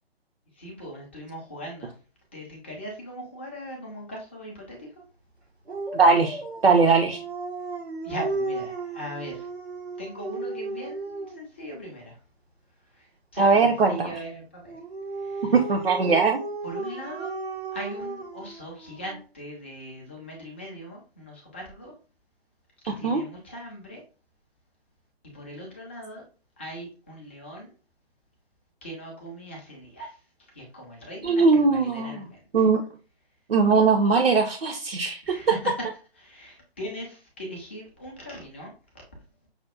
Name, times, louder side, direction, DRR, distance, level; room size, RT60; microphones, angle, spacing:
voice 1, 0.6-1.9 2.3-5.0 8.0-9.5 10.0-12.2 12.9-14.8 15.2-15.5 16.6-17.3 17.7-22.0 22.8-24.0 25.2-26.2 26.6-27.7 28.8-30.2 30.5-32.4 35.3-35.7 36.2-38.7, equal, 10° left, -2 dB, 0.4 m, -39 dB
Dog, 5.7-11.5 14.7-19.2, right 3 dB, 90° right, 0.9 m, -35 dB
voice 2, 5.9-7.2 13.4-14.1 15.5-16.4 22.9-23.2 31.2-32.3 32.5-32.8 33.5-35.3, right 4 dB, 65° right, 2 dB, 0.6 m, -20 dB
5.7 x 2.2 x 2.3 m, 0.35 s
figure-of-eight pair, 135°, 31 cm